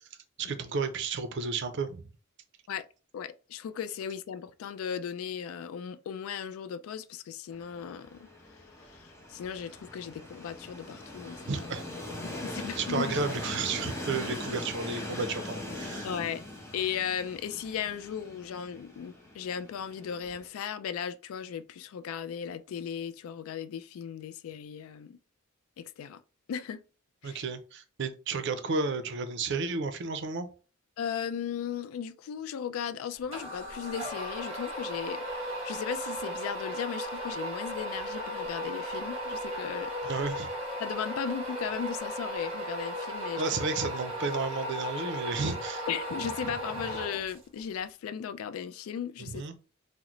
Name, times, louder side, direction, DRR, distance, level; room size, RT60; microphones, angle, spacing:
voice 1, 0.4-2.0 11.5-11.8 12.8-16.1 27.2-30.5 40.0-40.5 43.4-45.9 49.2-49.5, right 4 dB, 60° right, 0.5 m, -32 dB
voice 2, 3.1-8.3 8.8-11.7 12.2-13.1 16.0-16.4 16.7-25.2 25.8-26.2 26.5-26.8 27.2-27.4 31.0-40.2 40.8-43.4 45.9-49.4, left 8 dB, 80° left, 0.3 m, -36 dB
Train, 7.5-20.5, left 1 dB, 15° left, 0.6 m, -41 dB
sound 1, 33.3-47.6, equal, 30° right, 1.0 m, -36 dB
3.7 x 2.1 x 3.0 m
head